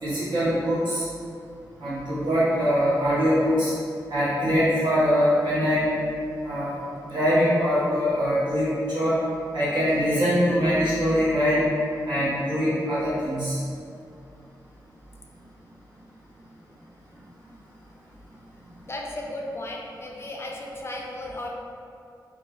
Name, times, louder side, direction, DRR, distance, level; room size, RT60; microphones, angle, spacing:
voice 1, 0.0-1.1 1.8-3.7 4.1-5.9 6.4-9.2 9.5-11.6 12.0-13.6, equal, 80° right, -12 dB, 1.1 m, -23 dB
voice 2, 18.9-21.5, left 1 dB, 35° left, -1 dB, 0.4 m, -35 dB
2.9 x 2.4 x 2.3 m, 2.4 s
cardioid pair, 60°, 8 cm